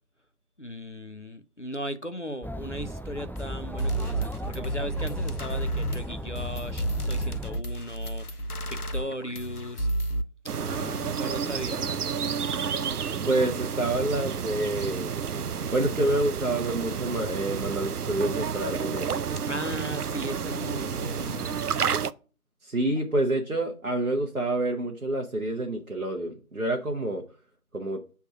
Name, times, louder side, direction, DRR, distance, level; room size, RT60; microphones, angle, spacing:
voice 1, 0.6-9.9 10.5-12.1 19.5-21.6, equal, 55° left, 0.5 m, -37 dB
Chatter, 2.4-7.6, equal, 5° left, 0.3 m, -36 dB
sound 1, 3.4-3.5 3.8-10.2, right 1 dB, 85° left, 0.9 m, -31 dB
sound 2, 10.5-22.1, right 7 dB, 90° right, 0.5 m, -30 dB
voice 2, 13.3-15.1 15.7-19.1 22.6-27.2 27.7-28.0, right 1 dB, 65° right, 1.1 m, -27 dB
6.1 x 3.5 x 5.7 m
figure-of-eight pair, 180°, 44 cm